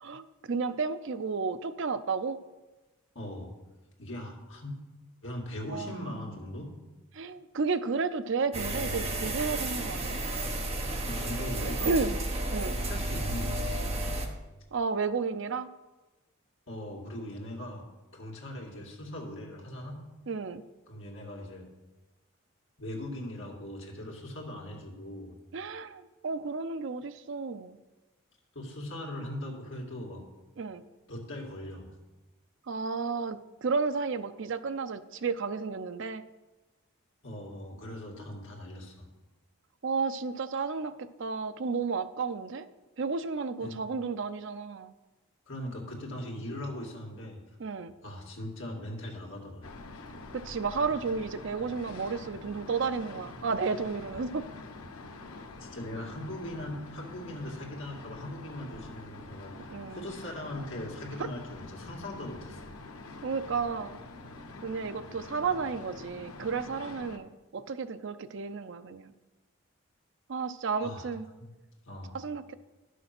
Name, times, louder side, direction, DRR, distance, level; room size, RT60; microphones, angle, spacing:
voice 1, 0.0-2.4 5.7-6.0 7.2-10.2 11.8-12.2 12.5-12.8 14.7-15.7 20.3-20.6 25.5-27.8 30.6-30.8 32.7-36.2 39.8-42.7 43.0-44.9 47.6-47.9 50.3-54.5 59.7-60.0 63.2-64.0 64.6-69.1 70.3-71.2 72.1-72.5, right 4 dB, 55° right, 12 dB, 0.5 m, -32 dB
voice 2, 3.1-3.5 4.0-4.8 5.2-6.7 11.0-12.0 12.8-14.0 16.7-17.8 18.1-20.0 20.9-21.7 22.8-25.4 28.5-30.2 31.1-31.9 37.2-39.1 43.6-43.8 45.5-47.4 48.0-49.7 55.6-62.8 70.8-71.1 71.4-71.5 71.8-72.2, left 1 dB, 60° left, -2 dB, 2.2 m, -40 dB
sound 1, 8.5-14.3, right 2 dB, 30° right, 1.0 m, -32 dB
Air conditioner in heating mode, 49.6-67.2, left 2 dB, 80° left, 0.8 m, -46 dB
11.0 x 6.5 x 6.0 m, 1.1 s
head